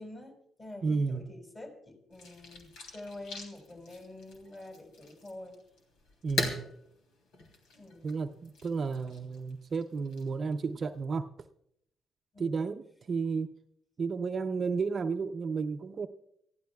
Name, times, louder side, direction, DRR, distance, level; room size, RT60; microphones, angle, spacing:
voice 1, 0.0-5.6 7.7-8.5 12.3-12.6, left 2 dB, 30° left, 1 dB, 5.7 m, -47 dB
voice 2, 0.8-1.3 6.2-6.7 8.0-11.3 12.4-13.5 14.0-16.1, right 4 dB, 45° right, 7 dB, 0.6 m, -32 dB
sound 1, 2.1-11.0, left 2 dB, 85° left, 3.1 m, -42 dB
25.0 x 15.0 x 2.3 m, 0.72 s
cardioid pair, 90°, 0 cm